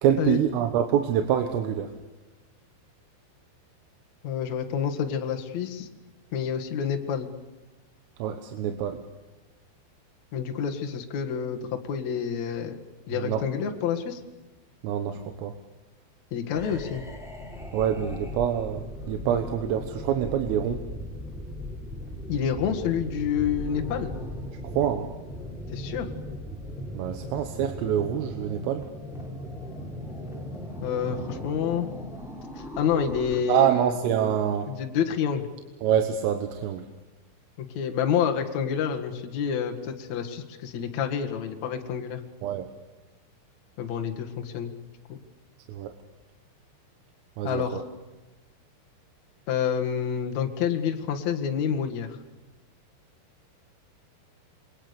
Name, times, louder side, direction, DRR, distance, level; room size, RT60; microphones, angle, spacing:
voice 1, 0.0-1.9 8.2-9.0 13.2-13.4 14.8-15.5 17.7-20.8 24.6-25.1 26.9-28.8 33.5-34.7 35.8-36.9 42.4-42.7 45.7-45.9 47.4-47.8, right 9 dB, 85° right, 6 dB, 3.9 m, -26 dB
voice 2, 4.2-5.9 6.3-7.3 10.3-12.8 13.1-14.2 16.3-17.0 22.3-24.2 25.7-26.1 30.8-31.9 32.6-33.9 34.7-35.5 37.6-42.2 43.8-44.8 45.1-45.2 47.4-47.8 49.5-52.2, left 8 dB, 55° left, 4 dB, 2.2 m, -28 dB
sound 1, 16.5-33.4, equal, ahead, 3.6 m, -38 dB
28.0 x 23.0 x 6.9 m, 1.2 s
omnidirectional pair, 5.7 m